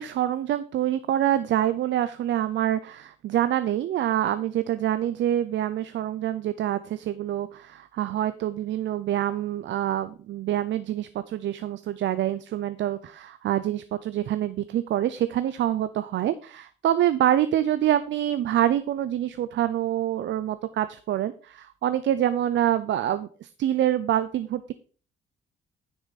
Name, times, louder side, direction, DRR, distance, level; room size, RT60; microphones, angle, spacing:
voice 1, 0.0-24.7, right 11 dB, 70° right, 13 dB, 0.6 m, -26 dB
9.8 x 6.2 x 4.1 m, 0.40 s
cardioid pair, 90°, 20 cm